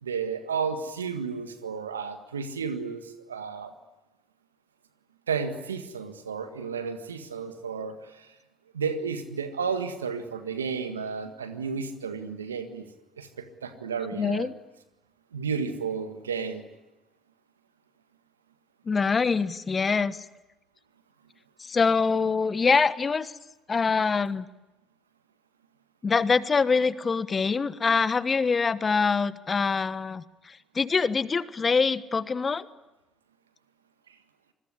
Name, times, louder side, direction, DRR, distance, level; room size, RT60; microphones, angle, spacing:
voice 1, 0.0-3.7 5.3-8.3 8.7-12.9 13.2-14.5 15.3-16.7, right 6 dB, 90° right, 9 dB, 1.7 m, -32 dB
voice 2, 14.2-14.5 18.8-20.2 21.6-23.4 23.7-24.4 26.0-32.7, left 5 dB, 35° left, 15 dB, 1.3 m, -24 dB
26.5 x 21.0 x 9.8 m, 1.0 s
hypercardioid pair, 50°, 0 cm